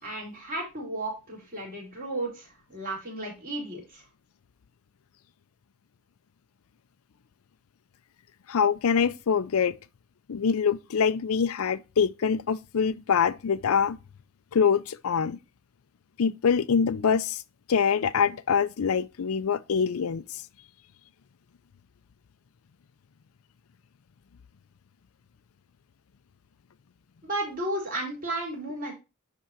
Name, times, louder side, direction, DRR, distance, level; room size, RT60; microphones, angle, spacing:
voice 1, 0.0-4.0 27.2-28.9, right 1 dB, 40° right, 4.3 m, -34 dB
voice 2, 8.5-9.8 10.3-14.0 14.5-15.4 16.2-17.4 17.7-20.4, left 6 dB, 85° left, 0.5 m, -24 dB
10.5 x 3.8 x 4.4 m
head